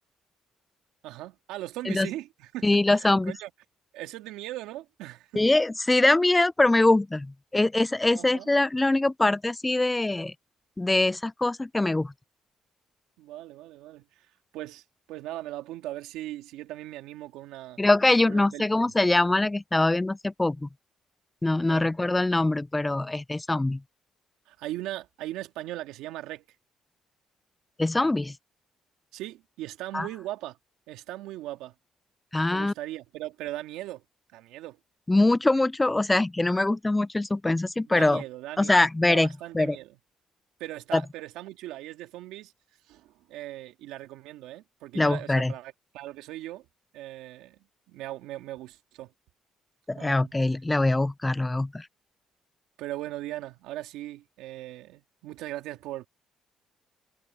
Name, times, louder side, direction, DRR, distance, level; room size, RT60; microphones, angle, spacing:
voice 1, 1.0-3.5 3.9-5.5 8.1-8.5 13.2-14.3 14.5-17.8 18.3-18.9 21.7-21.9 24.5-26.4 29.1-30.6 30.9-31.7 32.5-34.0 34.3-34.8 37.9-40.0 40.6-42.5 42.9-46.7 46.9-47.6 47.9-49.1 50.0-50.3 52.8-56.1, right 15 dB, 85° right, 2.2 m, -39 dB
voice 2, 2.6-3.3 5.4-10.3 10.8-12.1 17.8-20.7 21.4-23.8 27.8-28.3 29.9-30.1 32.3-32.7 35.1-38.2 38.6-39.3 39.5-39.8 40.9-41.0 44.9-45.5 49.9-51.9, left 2 dB, 15° left, 0.5 m, -23 dB
supercardioid pair, 80°, 0 cm